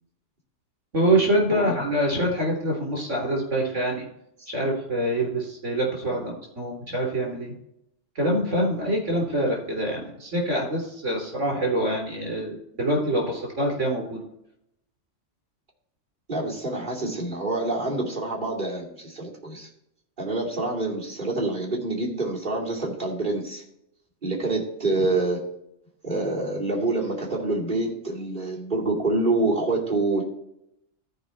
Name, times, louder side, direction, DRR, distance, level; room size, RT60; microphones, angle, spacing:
voice 1, 0.9-4.1 4.5-7.5 8.2-14.2 25.0-25.1, right 1 dB, 80° right, 0 dB, 4.0 m, -25 dB
voice 2, 16.3-19.7 20.2-23.6 24.2-25.4 26.0-30.3, right 2 dB, 40° right, -4 dB, 2.9 m, -26 dB
14.0 x 4.9 x 4.3 m, 0.78 s
omnidirectional pair, 1.2 m